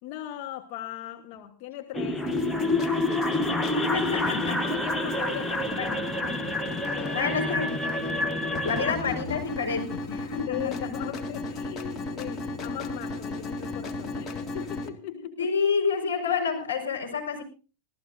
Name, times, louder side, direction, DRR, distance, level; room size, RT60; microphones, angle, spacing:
voice 1, 0.0-3.8 4.5-6.1 6.8-7.8 8.7-9.0 10.5-15.5, left 13 dB, 45° left, 5 dB, 1.2 m, -39 dB
sound 1, 1.9-8.9, left 2 dB, 5° left, 1.1 m, -28 dB
sound 2, 2.3-14.9, left 2 dB, 20° left, 1.9 m, -36 dB
voice 2, 3.7-4.7 5.8-6.4 7.1-7.7 8.6-10.7 15.1-17.4, left 5 dB, 75° left, 0 dB, 4.9 m, -29 dB
25.0 x 15.0 x 2.6 m, 0.36 s
figure-of-eight pair, 90°, 0 cm